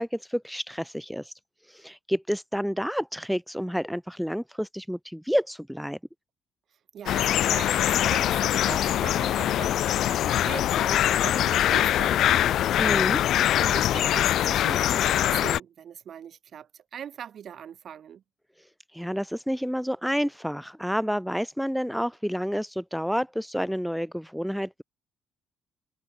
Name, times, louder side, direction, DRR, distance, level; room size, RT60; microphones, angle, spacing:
voice 1, 0.0-1.3 1.7-6.0 12.8-13.2 18.9-24.8, equal, ahead, 0.6 m, -29 dB
voice 2, 6.9-18.2, right 9 dB, 55° right, 1.9 m, -40 dB
sound 1, 7.1-15.6, left 12 dB, 70° left, 0.4 m, -23 dB
cardioid pair, 105°, 0 cm